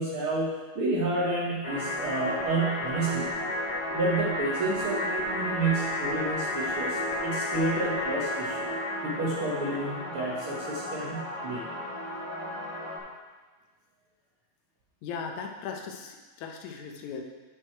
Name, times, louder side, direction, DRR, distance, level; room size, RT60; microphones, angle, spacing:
voice 1, 0.0-3.4 3.9-8.7 9.0-11.7, right 2 dB, 55° right, -5 dB, 1.6 m, -30 dB
sound 1, 1.6-13.0, left 1 dB, 35° left, 2.0 m, -32 dB
voice 2, 15.0-17.2, left 6 dB, 75° left, 2 dB, 2.1 m, -38 dB
8.3 x 6.3 x 4.5 m, 1.3 s
omnidirectional pair, 3.5 m